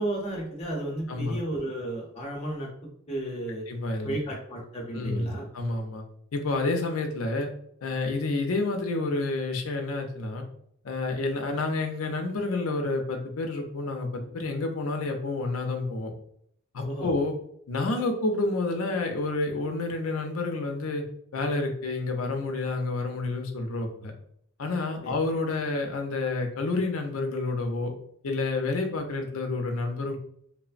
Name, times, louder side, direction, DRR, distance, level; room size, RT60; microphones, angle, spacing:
voice 1, 0.0-2.7 3.1-3.6 4.0-5.5 16.8-17.1 25.0-25.1, right 1 dB, 30° left, -2 dB, 0.6 m, -33 dB
voice 2, 3.7-4.2 4.9-6.0 6.3-7.5 7.8-10.4 10.8-16.1 16.7-17.3 17.7-21.0 21.3-24.1 24.6-27.9 28.2-30.2, left 3 dB, 70° left, 4 dB, 0.5 m, -29 dB
3.2 x 2.0 x 2.4 m, 0.69 s
head